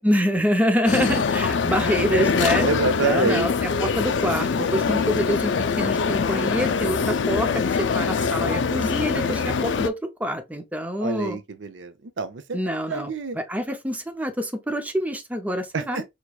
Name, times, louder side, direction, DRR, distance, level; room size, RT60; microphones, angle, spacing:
voice 1, 0.0-2.7 3.0-11.4 12.5-16.0, equal, 10° right, 0.5 m, -26 dB
sound 1, 0.9-9.9, left 5 dB, 70° left, 0.4 m, -23 dB
voice 2, 2.6-3.5 11.0-13.4 15.7-16.0, right 4 dB, 75° right, 0.6 m, -27 dB
4.5 x 3.0 x 2.3 m
head